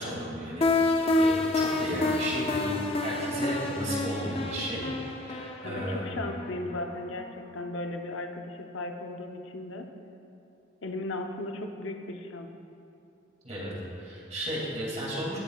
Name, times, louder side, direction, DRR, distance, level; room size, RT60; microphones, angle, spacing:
voice 1, 0.0-4.9 5.2-6.2 13.4-15.4, equal, 35° right, -6 dB, 2.4 m, -34 dB
sound 1, 0.6-7.4, left 2 dB, 30° left, 0.6 m, -28 dB
voice 2, 5.6-9.9 10.8-12.5, left 2 dB, 80° left, 4 dB, 0.7 m, -36 dB
17.5 x 7.2 x 2.3 m, 2.6 s
head